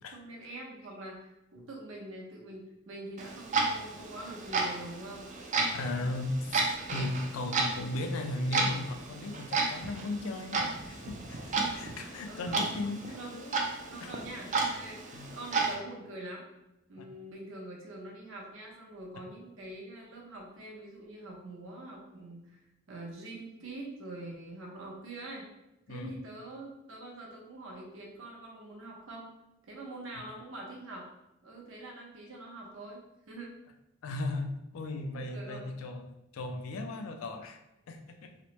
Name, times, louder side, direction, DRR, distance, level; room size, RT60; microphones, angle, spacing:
voice 1, 0.1-5.3 6.8-7.2 12.3-12.8 13.1-13.3 13.9-16.5 16.9-25.5 25.9-29.3 29.7-31.1 31.4-33.0 33.3-33.5 35.1-35.7, right 2 dB, 70° right, -2 dB, 0.7 m, -44 dB
Clock, 3.2-15.7, right 3 dB, 35° right, 0.3 m, -33 dB
voice 2, 5.7-13.1 13.3-13.6 14.0-14.1 15.1-15.3 17.0-17.1 25.9-26.1 34.0-36.0 36.3-37.6 37.9-38.3, left 2 dB, 85° left, 5 dB, 0.4 m, -36 dB
2.9 x 2.1 x 2.9 m, 0.90 s
head